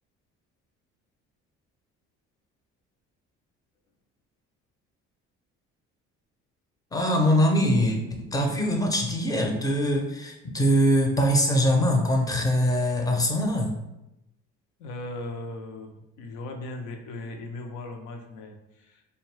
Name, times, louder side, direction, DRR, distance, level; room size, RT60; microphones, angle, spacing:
voice 1, 6.9-8.0 8.3-13.8, equal, 10° left, 2 dB, 0.5 m, -23 dB
voice 2, 14.8-19.0, left 2 dB, 75° left, 4 dB, 0.6 m, -38 dB
2.6 x 2.2 x 3.1 m, 0.93 s
supercardioid pair, 85°, 30 cm